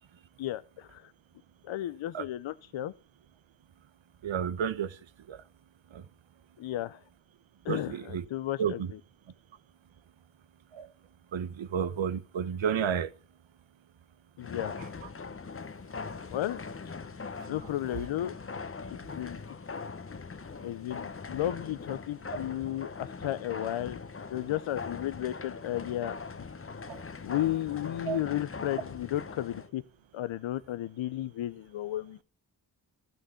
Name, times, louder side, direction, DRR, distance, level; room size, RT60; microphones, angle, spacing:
voice 1, 0.4-1.1 1.6-2.9 6.6-7.0 7.6-8.8 14.4-14.8 16.3-16.6 16.8-16.9 17.5-18.3 19.1-19.4 20.6-24.0 24.3-26.2 27.2-29.8 30.1-32.2, left 13 dB, 85° left, 0.6 m, -33 dB
voice 2, 4.2-5.0 5.3-5.4 5.9-6.1 7.7-8.2 8.6-8.9 10.7-10.9 11.3-13.1 17.4-17.5 26.9-27.0 28.1-28.2, right 8 dB, 75° right, 0.9 m, -31 dB
sound 1, 14.4-29.7, left 4 dB, 30° left, 0.8 m, -41 dB
12.5 x 6.5 x 6.9 m
cardioid pair, 40°, 46 cm